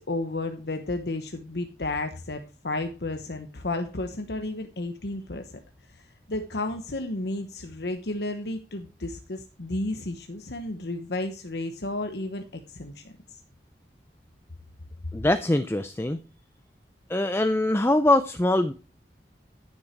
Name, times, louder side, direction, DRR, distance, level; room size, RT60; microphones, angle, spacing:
voice 1, 0.0-5.6 5.9-13.4, left 2 dB, 75° left, 6 dB, 1.0 m, -32 dB
voice 2, 15.1-16.2 17.1-18.7, left 1 dB, 15° left, 11 dB, 0.5 m, -23 dB
14.5 x 7.3 x 4.6 m, 0.34 s
head